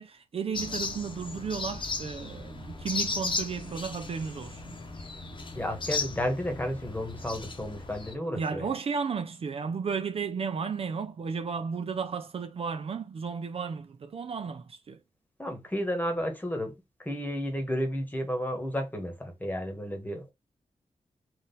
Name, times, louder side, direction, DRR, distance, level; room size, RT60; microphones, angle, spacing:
voice 1, 0.0-4.8 8.3-15.0, right 5 dB, 50° right, 0.4 m, -34 dB
sound 1, 0.5-8.2, left 3 dB, 40° left, 0.9 m, -36 dB
voice 2, 5.5-8.7 15.4-16.7 17.0-20.3, equal, 15° left, 1.3 m, -32 dB
3.7 x 2.5 x 4.0 m
wide cardioid pair, 105°, 13 cm